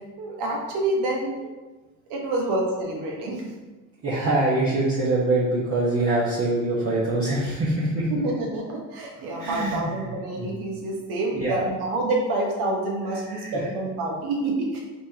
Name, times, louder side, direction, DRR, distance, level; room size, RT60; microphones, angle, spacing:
voice 1, 0.2-1.5 2.1-3.5 8.1-14.8, right 2 dB, 70° right, -1 dB, 1.3 m, -27 dB
voice 2, 4.0-8.1 9.4-10.0 10.4-10.5 11.3-11.7 13.3-13.6, right 2 dB, 35° right, -9 dB, 1.2 m, -24 dB
4.2 x 3.5 x 2.9 m, 1.2 s
supercardioid pair, 80°, 40 cm